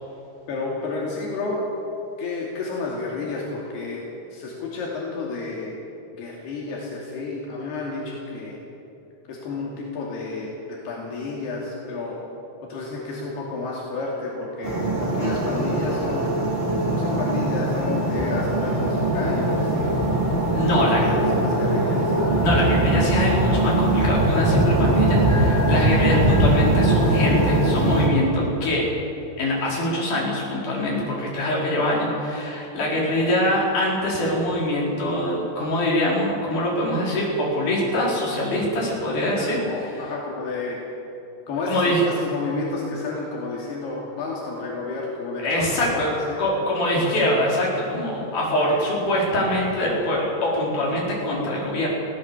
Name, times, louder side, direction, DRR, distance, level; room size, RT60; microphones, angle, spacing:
voice 1, 0.5-1.6 2.2-4.1 4.3-5.7 6.2-8.6 9.3-12.2 12.6-16.3 16.9-19.9 20.7-22.2 39.4-40.8 41.5-46.4 48.7-48.8, left 3 dB, 80° left, -3 dB, 4.6 m, -31 dB
sound 1, 14.6-28.1, right 1 dB, 15° right, 3.5 m, -21 dB
voice 2, 20.5-21.0 22.4-28.9 29.4-39.9 41.7-42.0 45.4-46.1 46.4-51.9, left 1 dB, 50° left, -4 dB, 6.0 m, -24 dB
24.5 x 16.5 x 7.1 m, 2.9 s
omnidirectional pair, 4.6 m